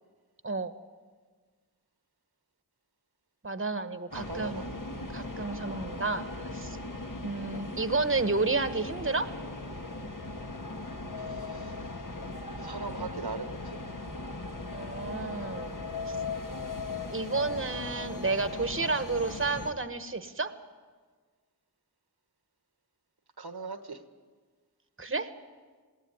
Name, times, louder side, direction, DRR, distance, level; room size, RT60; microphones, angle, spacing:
voice 1, 3.4-4.7 5.1-6.2 6.5-6.8 7.2-9.3 14.7-16.2 17.1-20.5 25.0-25.3, right 3 dB, 35° right, 10 dB, 1.1 m, -31 dB
sound 1, 4.1-19.7, left 3 dB, 55° left, 1.6 m, -38 dB
voice 2, 4.1-4.8 11.3-11.7 12.6-13.8 23.4-24.0, right 3 dB, 85° right, 9 dB, 1.3 m, -39 dB
20.0 x 17.0 x 9.8 m, 1.5 s
wide cardioid pair, 45°, 38 cm